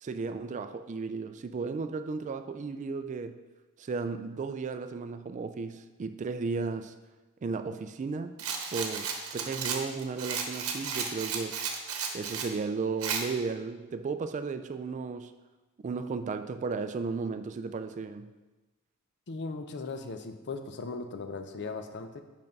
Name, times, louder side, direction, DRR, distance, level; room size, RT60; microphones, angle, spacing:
voice 1, 0.0-3.4 3.8-6.9 7.4-8.3 8.7-11.6 12.1-15.3 15.8-18.3, right 4 dB, 35° right, 10 dB, 0.3 m, -34 dB
Rattle, 8.4-12.5 13.0-13.2, right 6 dB, 75° right, 0.9 m, -34 dB
voice 2, 19.3-22.2, left 3 dB, 55° left, 8 dB, 0.6 m, -38 dB
5.5 x 5.2 x 5.3 m, 1.2 s
head